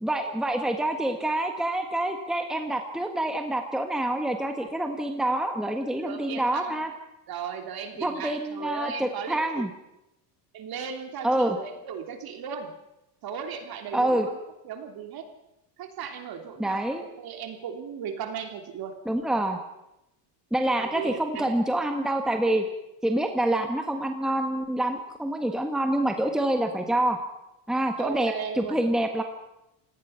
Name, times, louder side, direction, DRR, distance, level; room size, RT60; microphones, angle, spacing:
voice 1, 0.0-6.9 8.0-9.7 11.2-11.6 13.9-14.3 16.6-17.0 19.0-19.6 20.5-22.6 23.0-27.2 27.7-29.2, right 1 dB, ahead, 4 dB, 1.6 m, -26 dB
voice 2, 6.0-6.8 7.3-9.7 10.5-12.7 13.2-14.4 14.6-15.3 15.8-19.0 20.8-21.6 28.0-28.8, right 7 dB, 45° right, 5 dB, 3.3 m, -36 dB
28.0 x 18.0 x 5.8 m, 0.89 s
cardioid pair, 130°, 49 cm